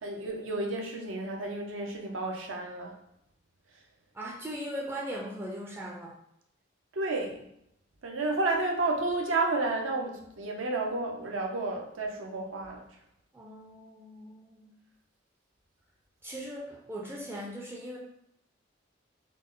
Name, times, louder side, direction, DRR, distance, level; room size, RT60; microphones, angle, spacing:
voice 1, 0.0-2.9 6.9-7.4 8.0-12.8, right 2 dB, 85° right, 1 dB, 0.7 m, -31 dB
voice 2, 4.1-6.2 13.3-14.7 16.2-18.0, equal, 10° right, -2 dB, 0.3 m, -39 dB
3.8 x 2.0 x 3.7 m, 0.77 s
head